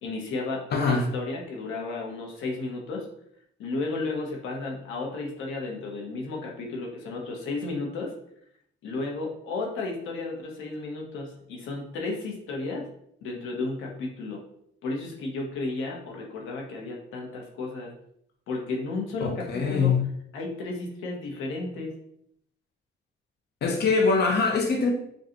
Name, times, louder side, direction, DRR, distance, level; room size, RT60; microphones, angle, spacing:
voice 1, 0.0-3.1 3.6-8.1 8.8-12.9 13.2-14.4 14.8-17.9 18.5-20.0 20.3-21.9, left 3 dB, 90° left, 0 dB, 0.9 m, -33 dB
voice 2, 0.7-1.0 19.2-20.0 23.6-24.9, left 4 dB, 55° left, 1 dB, 0.7 m, -23 dB
5.2 x 2.3 x 2.9 m, 0.71 s
cardioid pair, 90°, 20 cm